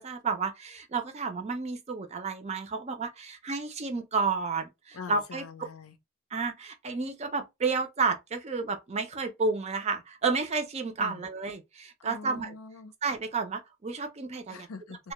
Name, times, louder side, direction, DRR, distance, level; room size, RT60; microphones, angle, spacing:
voice 1, 0.0-5.4 6.3-12.5 13.0-14.7, right 4 dB, 30° right, 0.4 m, -31 dB
voice 2, 4.9-5.9 11.0-11.2 12.0-12.9 14.5-15.0, left 5 dB, 85° left, 0.5 m, -43 dB
2.2 x 2.1 x 2.8 m
head